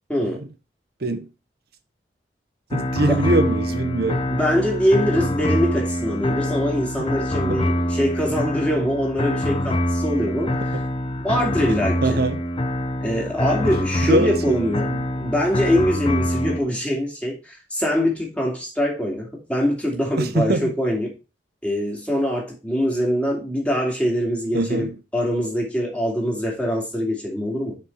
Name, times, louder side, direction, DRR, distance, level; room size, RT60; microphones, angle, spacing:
voice 1, 0.1-0.4 3.1-3.3 4.3-10.6 11.2-12.2 13.0-14.9 15.2-21.1 21.6-27.8, equal, 5° left, 2.8 m, -23 dB
sound 1, 2.7-16.6, left 1 dB, 30° left, 0.7 m, -25 dB
voice 2, 2.7-4.2 7.5-7.6 12.0-12.4 14.0-15.0 20.2-20.7 24.5-24.9, right 2 dB, 60° right, 1.0 m, -23 dB
6.9 x 5.2 x 4.7 m
head